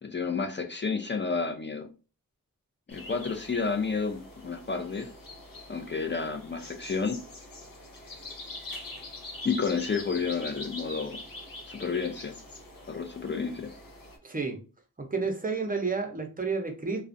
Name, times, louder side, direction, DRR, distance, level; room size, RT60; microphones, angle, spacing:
voice 1, 0.0-1.9 2.9-5.1 5.7-7.2 9.4-11.2 11.7-12.3 12.9-13.7, left 5 dB, 35° left, 5 dB, 0.4 m, -30 dB
sound 1, 2.9-14.2, left 1 dB, 80° left, 0.7 m, -44 dB
voice 2, 14.2-14.6 15.0-17.0, right 4 dB, 25° right, 3 dB, 0.6 m, -30 dB
2.4 x 2.1 x 2.5 m, 0.33 s
cardioid pair, 50°, 33 cm